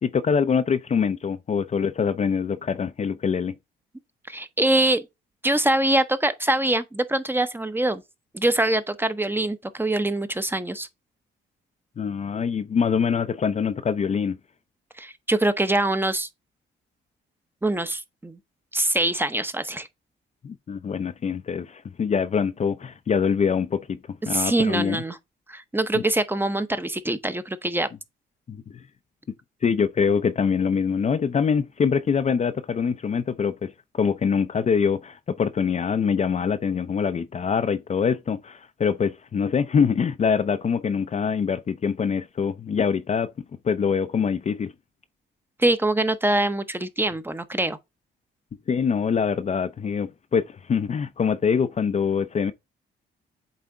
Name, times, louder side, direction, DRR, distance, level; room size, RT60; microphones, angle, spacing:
voice 1, 0.0-3.5 12.0-14.4 20.4-25.0 25.9-26.0 28.5-28.8 29.6-43.3 43.6-44.7 48.7-52.5, left 6 dB, 35° left, 0.5 m, -24 dB
voice 2, 4.3-5.1 5.4-8.0 8.3-10.9 15.0-16.3 17.6-18.4 18.7-19.9 24.2-25.2 25.5-27.9 45.6-47.8, right 1 dB, 10° right, 0.8 m, -24 dB
8.3 x 3.5 x 3.8 m
cardioid pair, 90°, 20 cm